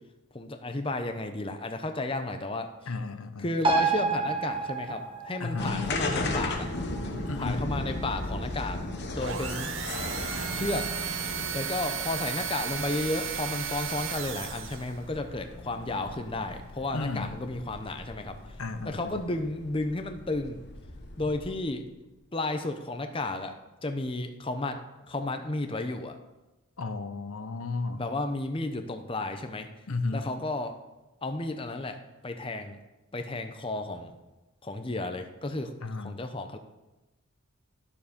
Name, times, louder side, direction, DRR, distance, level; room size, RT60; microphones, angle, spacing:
voice 1, 0.3-2.7 3.4-6.7 7.0-7.1 7.4-8.8 9.1-9.7 10.5-10.9 11.5-18.6 18.8-20.6 21.2-21.8 22.3-23.5 23.8-26.2 27.9-29.7 30.1-30.8 31.2-32.8 33.1-34.1 34.6-35.7 36.0-36.6, left 2 dB, 25° left, 7 dB, 0.6 m, -33 dB
voice 2, 2.9-3.5 5.4-5.8 7.2-7.6 16.9-17.4 18.6-19.2 26.8-28.0 29.9-30.3 35.8-36.2, left 3 dB, 80° left, 9 dB, 0.8 m, -33 dB
sound 1, 3.6-10.6 10.9-11.0, right 4 dB, 25° right, 1.1 m, -32 dB
sound 2, 5.6-21.8, left 2 dB, 50° left, 1.1 m, -37 dB
sound 3, 9.2-15.0, right 8 dB, 65° right, 0.7 m, -34 dB
12.0 x 7.1 x 5.2 m, 1.0 s
head